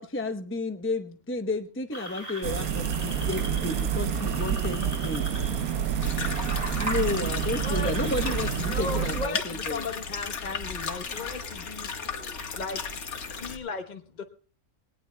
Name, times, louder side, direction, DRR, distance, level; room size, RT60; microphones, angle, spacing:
voice 1, 0.0-5.3 6.8-9.9, left 2 dB, 10° left, 7 dB, 0.6 m, -32 dB
sound 1, 1.9-8.6, right 1 dB, 35° right, 5.6 m, -39 dB
sound 2, 2.4-9.3, right 8 dB, 75° right, 1.3 m, -28 dB
voice 2, 4.1-6.4 7.7-8.1 8.4-8.7 11.1-11.6 12.0-12.4, left 2 dB, 50° left, 5 dB, 2.6 m, -51 dB
sound 3, 6.0-13.6, left 5 dB, 75° left, 2.0 m, -35 dB
voice 3, 7.6-8.4 8.7-11.9 12.6-12.8 13.4-14.2, left 3 dB, 35° left, 5 dB, 1.0 m, -36 dB
20.5 x 18.5 x 2.2 m, 0.43 s
omnidirectional pair, 1.5 m